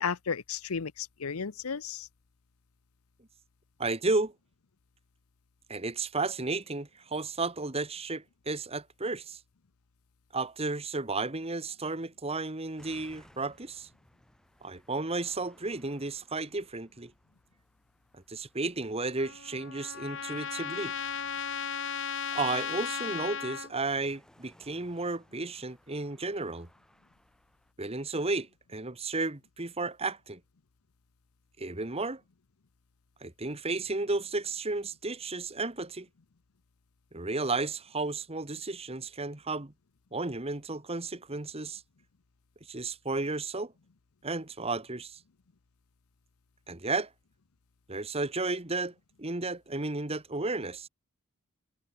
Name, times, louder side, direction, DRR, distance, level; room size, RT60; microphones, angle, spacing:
voice 1, 0.0-2.1, left 6 dB, 80° left, 0.8 m, -33 dB
voice 2, 3.8-4.3 5.7-9.4 10.3-13.9 14.6-17.1 18.1-20.9 22.3-26.7 27.8-30.4 31.6-32.2 33.2-36.1 37.1-39.7 40.1-41.8 42.7-43.7 44.2-45.2 46.7-47.1 47.9-50.9, right 3 dB, 30° right, 1.5 m, -33 dB
sound 1, 12.8-27.7, equal, 5° left, 7.4 m, -63 dB
Trumpet, 19.2-23.7, left 7 dB, 60° left, 2.1 m, -36 dB
head